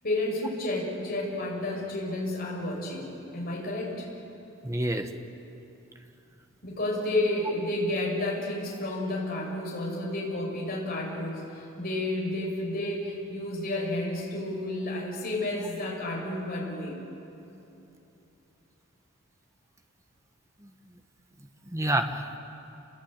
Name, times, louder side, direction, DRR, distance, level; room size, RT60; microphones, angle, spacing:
voice 1, 0.0-4.1 6.6-17.0, left 1 dB, 45° left, -3 dB, 6.6 m, -31 dB
voice 2, 4.6-5.1 20.6-20.7 21.4-22.4, right 1 dB, 15° right, 6 dB, 1.4 m, -29 dB
29.0 x 21.5 x 9.0 m, 2.9 s
head